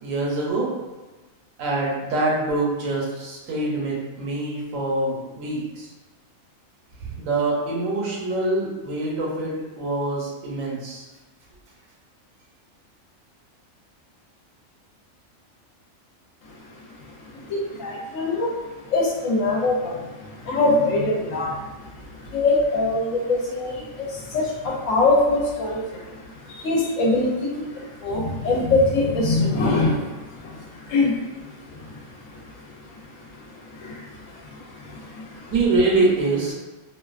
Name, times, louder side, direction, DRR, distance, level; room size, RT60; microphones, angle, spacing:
voice 1, 0.0-0.7 1.6-5.9 7.0-11.1 35.5-36.5, right 2 dB, 75° right, -3 dB, 1.0 m, -24 dB
voice 2, 17.5-18.5 18.9-20.0 20.5-21.5 22.3-23.7 24.3-25.8 26.6-27.3 28.0-29.9 30.9-31.1, left 2 dB, 75° left, -2 dB, 0.9 m, -21 dB
2.4 x 2.2 x 2.3 m, 1.2 s
omnidirectional pair, 1.4 m